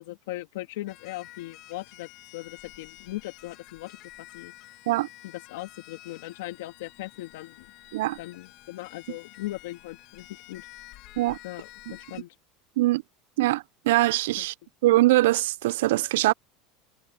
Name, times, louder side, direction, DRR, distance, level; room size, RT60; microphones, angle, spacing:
voice 1, 0.0-4.8 5.2-7.7 8.2-10.9 11.4-12.4 14.4-14.5, left 17 dB, 80° left, 2.1 m, -39 dB
sound 1, 0.9-12.2, left 18 dB, 60° left, 1.6 m, -50 dB
voice 2, 13.4-14.5 14.8-16.3, right 17 dB, 80° right, 0.3 m, -22 dB
supercardioid pair, 125°, 0 cm